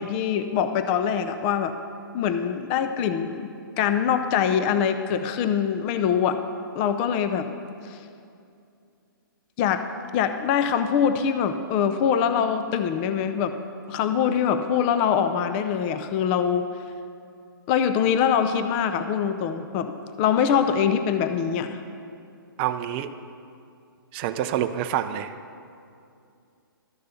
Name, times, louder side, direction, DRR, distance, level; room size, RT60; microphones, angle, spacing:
voice 1, 0.0-1.7 2.1-3.5 3.8-6.4 6.7-7.5 7.8-8.0 9.6-9.8 10.1-13.5 13.9-16.7 17.7-19.9 20.2-21.8, left 8 dB, 25° left, 9 dB, 0.5 m, -23 dB
voice 2, 22.6-23.1 24.1-25.3, right 11 dB, 30° right, 8 dB, 0.4 m, -27 dB
12.5 x 6.7 x 6.8 m, 2.5 s
hypercardioid pair, 140°, 12 cm